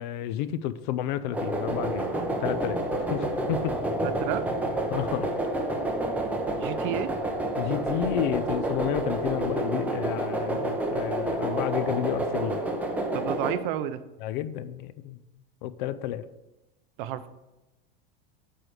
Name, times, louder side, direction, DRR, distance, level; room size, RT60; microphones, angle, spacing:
voice 1, 0.0-2.1 2.4-3.7 4.9-5.3 7.6-12.6 14.2-15.2 15.6-16.2, left 11 dB, 55° left, 15 dB, 0.5 m, -31 dB
sound 1, 1.3-13.5, right 1 dB, 5° right, 0.5 m, -29 dB
voice 2, 4.0-4.4 6.6-7.1 13.1-14.0 17.0-17.3, right 11 dB, 60° right, 13 dB, 0.6 m, -31 dB
9.1 x 3.4 x 6.2 m, 1.0 s
supercardioid pair, 165°, 29 cm